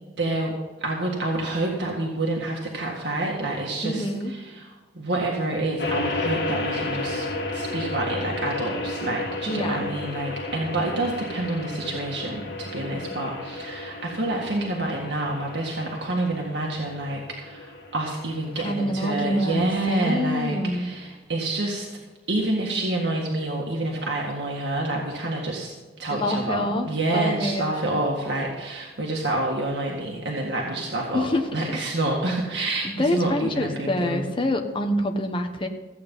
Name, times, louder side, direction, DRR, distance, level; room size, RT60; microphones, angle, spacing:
voice 1, 0.2-0.5 0.8-7.3 7.5-21.9 22.3-34.3, right 2 dB, 80° right, -2 dB, 1.8 m, -28 dB
voice 2, 3.8-4.3 9.5-9.9 18.6-20.9 26.1-26.9 27.1-27.9 31.1-31.6 32.8-35.7, left 1 dB, 30° left, 4 dB, 1.0 m, -26 dB
sound 1, 5.8-21.1, left 2 dB, 65° left, 2.2 m, -33 dB
14.5 x 8.6 x 5.5 m, 1.3 s
head